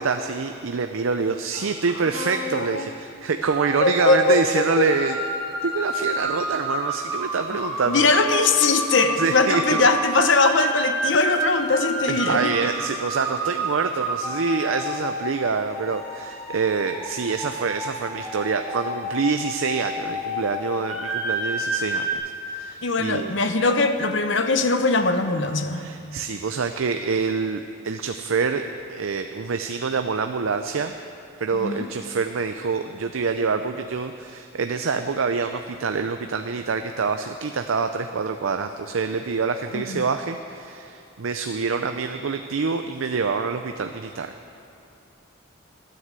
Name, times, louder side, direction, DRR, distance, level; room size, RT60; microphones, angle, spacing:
voice 1, 0.0-5.2 5.6-8.1 9.2-9.8 12.1-23.3 25.7-28.6 28.9-30.9 31.4-44.3, right 5 dB, 80° right, 7 dB, 0.5 m, -26 dB
voice 2, 2.1-2.9 3.8-4.9 7.9-12.5 22.8-25.8 31.5-31.9 39.7-40.0, left 3 dB, 65° left, 8 dB, 0.9 m, -21 dB
sound 1, 3.4-22.1, right 1 dB, ahead, 2.8 m, -30 dB
13.0 x 9.4 x 7.6 m, 2.8 s
head